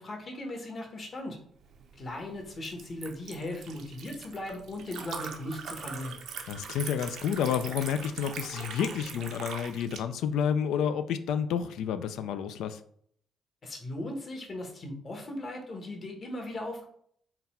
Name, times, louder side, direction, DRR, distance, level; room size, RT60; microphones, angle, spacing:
voice 1, 0.0-1.4 2.0-6.2 13.6-16.9, left 1 dB, 40° left, 3 dB, 1.0 m, -38 dB
Liquid, 1.6-10.0, right 6 dB, 70° right, 0.6 m, -42 dB
voice 2, 6.5-12.8, left 8 dB, 85° left, 11 dB, 0.3 m, -30 dB
3.9 x 2.3 x 4.1 m, 0.63 s
cardioid pair, 90°, 0 cm